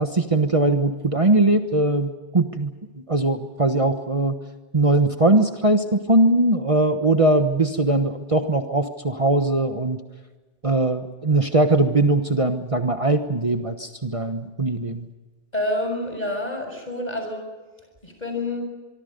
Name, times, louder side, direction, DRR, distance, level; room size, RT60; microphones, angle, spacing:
voice 1, 0.0-2.7 3.1-4.3 4.7-10.0 10.6-15.1, right 2 dB, 35° right, 6 dB, 1.3 m, -20 dB
voice 2, 15.5-17.5 18.0-18.6, left 1 dB, 40° left, 4 dB, 6.6 m, -28 dB
24.5 x 24.5 x 5.4 m, 1.3 s
omnidirectional pair, 1.1 m